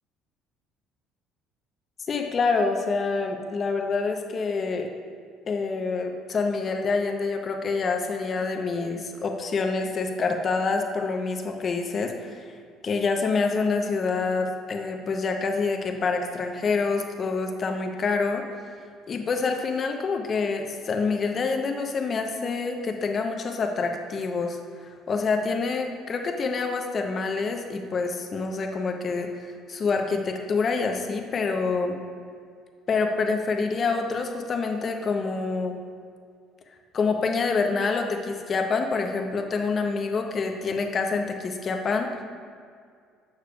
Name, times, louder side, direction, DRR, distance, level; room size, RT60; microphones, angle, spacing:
voice 1, 2.1-4.9 5.5-12.5 12.8-18.6 19.1-32.0 32.9-35.8 36.9-42.2, left 4 dB, 40° left, 3 dB, 0.7 m, -27 dB
6.6 x 6.6 x 2.3 m, 2.2 s
supercardioid pair, 95°, 0 cm